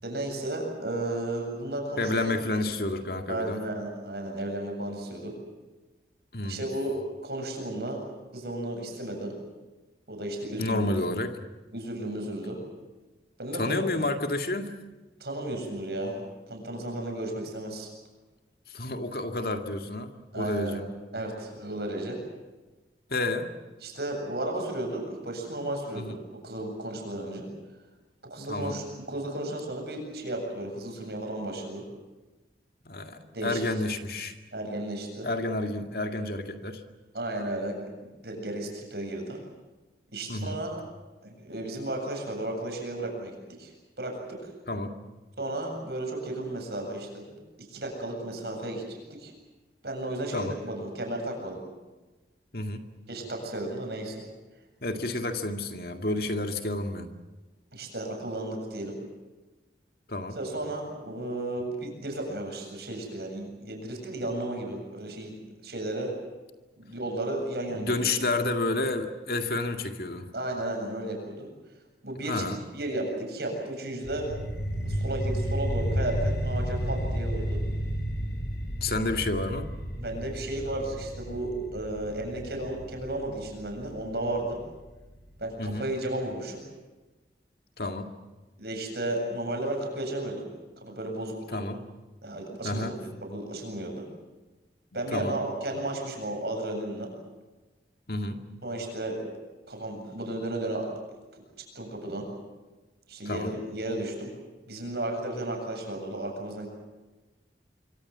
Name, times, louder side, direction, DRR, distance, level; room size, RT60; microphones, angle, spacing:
voice 1, 0.0-2.3 3.3-5.3 6.4-8.0 8.3-9.3 10.1-10.9 11.7-12.6 13.4-13.8 15.2-16.2 16.5-17.9 20.3-20.8 21.1-22.2 23.8-26.2 26.4-27.5 28.2-31.8 33.3-33.8 34.5-35.3 37.1-37.8 38.2-39.4 40.1-40.8 41.2-43.7 44.0-44.5 45.4-47.4 47.7-49.3 49.8-51.6 53.1-54.2 57.7-59.0 60.4-66.1 66.8-68.1 70.3-71.5 72.0-72.5 72.7-74.3 74.8-77.6 80.0-84.6 85.4-86.6 88.6-90.5 90.8-91.6 92.2-94.1 94.9-97.1 98.6-99.2 99.7-100.9 101.7-102.3 103.1-104.3 104.7-106.7, right 1 dB, 65° right, 2 dB, 7.8 m, -34 dB
voice 2, 2.0-3.6 6.3-6.6 10.6-11.4 13.5-14.7 18.7-20.8 23.1-23.5 25.9-26.2 28.5-28.8 32.9-34.4 35.2-36.8 40.3-40.6 44.7-44.9 50.3-50.6 52.5-52.8 54.8-57.1 60.1-60.4 67.7-70.3 72.3-72.6 78.8-79.7 85.6-85.9 87.8-88.1 91.5-91.8 92.6-92.9 95.1-95.4 98.1-98.4 103.3-103.5, left 2 dB, 55° left, 6 dB, 2.1 m, -30 dB
sound 1, 74.0-85.1, equal, 75° left, 4.6 m, -32 dB
25.5 x 25.0 x 7.4 m, 1.2 s
head